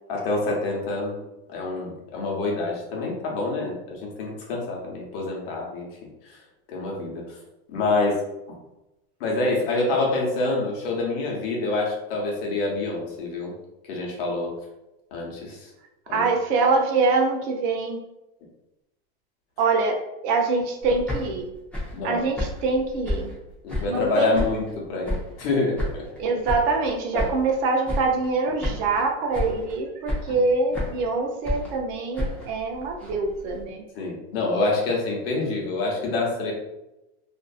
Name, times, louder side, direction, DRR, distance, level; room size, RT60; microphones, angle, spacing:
voice 1, 0.1-1.2 1.5-5.9 6.2-6.4 6.7-7.2 7.7-8.2 8.5-8.6 9.2-13.5 13.9-14.5 15.1-15.7 16.1-16.2 21.9-22.2 23.6-26.0 27.1-27.3 34.0-36.5, left 2 dB, 65° left, -1 dB, 0.9 m, -26 dB
voice 2, 16.1-18.0 19.6-20.0 20.2-21.5 22.0-23.3 23.9-24.5 26.2-33.8, right 3 dB, 50° right, 2 dB, 0.5 m, -24 dB
sound 1, 20.8-24.1 24.3-25.5 25.8-27.6 27.8-28.3 28.6-29.1 29.3-29.8 30.1-31.1 31.4-33.6, left 1 dB, 5° left, 0.5 m, -31 dB
2.6 x 2.4 x 2.3 m, 0.95 s
supercardioid pair, 155°, 32 cm